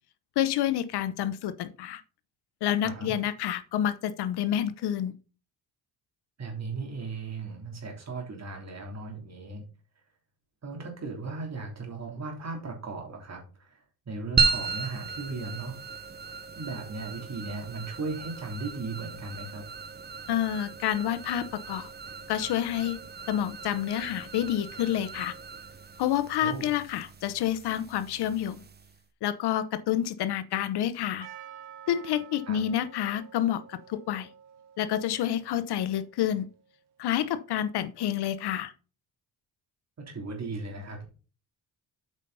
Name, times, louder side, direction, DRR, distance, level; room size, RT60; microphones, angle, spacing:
voice 1, 0.4-2.0 2.6-5.1 20.3-21.9 22.3-23.0 23.3-25.3 26.0-28.6 29.2-31.3 31.9-34.3 34.8-36.5 37.0-38.7, left 11 dB, 80° left, 0.9 m, -28 dB
voice 2, 2.8-3.2 6.4-9.6 10.6-13.4 13.7-13.8 14.1-15.8 16.6-19.6 26.4-26.7 32.5-32.6 40.1-41.1, right 3 dB, 40° right, 3.2 m, -36 dB
sound 1, 14.4-29.0, right 4 dB, 25° right, 0.8 m, -35 dB
Percussion, 31.2-36.1, right 9 dB, 75° right, 1.3 m, -50 dB
8.2 x 5.5 x 4.1 m
cardioid pair, 100°, 39 cm